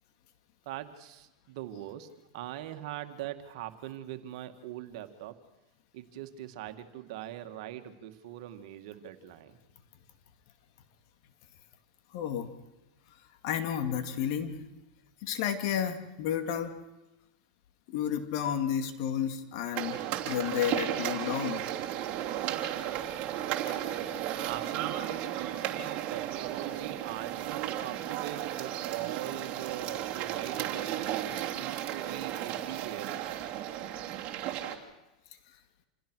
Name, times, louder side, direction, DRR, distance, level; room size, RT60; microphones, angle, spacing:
voice 1, 0.7-5.4 5.9-9.6 23.9-24.0 24.5-33.4, right 12 dB, 65° right, 8 dB, 2.0 m, -42 dB
voice 2, 12.1-12.5 13.4-14.6 15.2-16.8 17.9-20.0 20.2-21.7, left 9 dB, 60° left, 8 dB, 2.4 m, -31 dB
sound 1, 19.7-34.7, right 12 dB, 40° right, 3.1 m, -34 dB
28.0 x 16.5 x 6.4 m, 1.0 s
hypercardioid pair, 120°, 3 cm